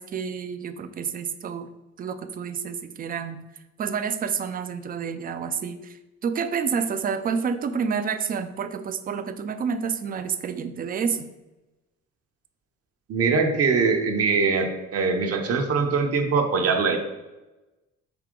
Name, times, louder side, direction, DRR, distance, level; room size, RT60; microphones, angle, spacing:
voice 1, 0.0-1.7 2.0-3.4 3.8-11.3, right 6 dB, 30° right, 9 dB, 0.4 m, -29 dB
voice 2, 13.1-17.0, right 4 dB, 50° right, 4 dB, 0.8 m, -22 dB
4.9 x 2.8 x 3.7 m, 1.1 s
cardioid pair, 90°, 30 cm